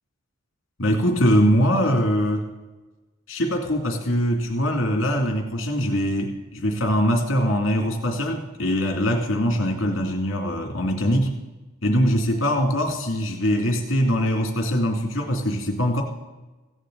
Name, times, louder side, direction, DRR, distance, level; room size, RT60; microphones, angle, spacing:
voice 1, 0.8-2.5 3.3-11.3 11.8-16.0, equal, 65° left, 2 dB, 2.7 m, -22 dB
16.0 x 15.5 x 4.0 m, 1.1 s
head